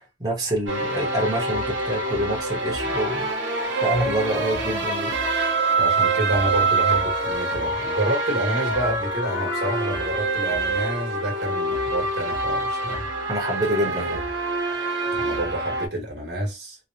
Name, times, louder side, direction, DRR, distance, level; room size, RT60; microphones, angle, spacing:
voice 1, 0.0-3.3 3.8-5.1 13.3-14.3, right 1 dB, 20° right, 0.9 m, -27 dB
sound 1, 0.7-15.9, right 3 dB, 85° right, 0.9 m, -25 dB
voice 2, 5.7-13.0 15.1-16.8, right 1 dB, 65° right, 1.2 m, -28 dB
sound 2, 8.5-12.1, left 4 dB, 85° left, 0.4 m, -36 dB
3.0 x 2.0 x 2.6 m
head